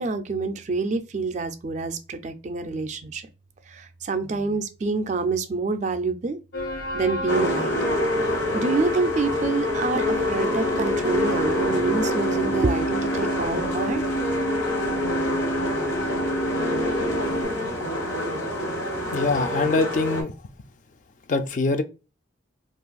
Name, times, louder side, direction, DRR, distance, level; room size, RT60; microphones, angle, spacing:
voice 1, 0.0-3.3 3.7-6.4 6.9-7.7 8.5-14.1, right 4 dB, 35° right, 0.3 m, -27 dB
sound 1, 6.5-17.4, right 2 dB, 90° left, 1.2 m, -31 dB
sound 2, 7.3-20.2, left 1 dB, 70° left, 1.1 m, -26 dB
voice 2, 19.1-20.3 21.3-21.8, left 3 dB, 40° left, 0.3 m, -23 dB
2.6 x 2.4 x 3.8 m
head